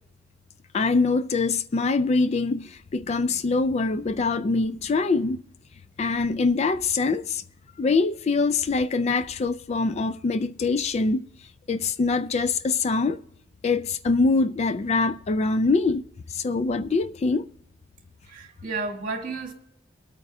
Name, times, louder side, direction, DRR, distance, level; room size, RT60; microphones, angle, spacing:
voice 1, 0.7-5.4 6.0-7.4 7.8-11.3 11.7-13.2 13.6-17.5, left 3 dB, 35° left, 0.4 m, -24 dB
voice 2, 18.3-19.5, right 3 dB, 50° right, 2.1 m, -32 dB
24.0 x 8.8 x 2.7 m
head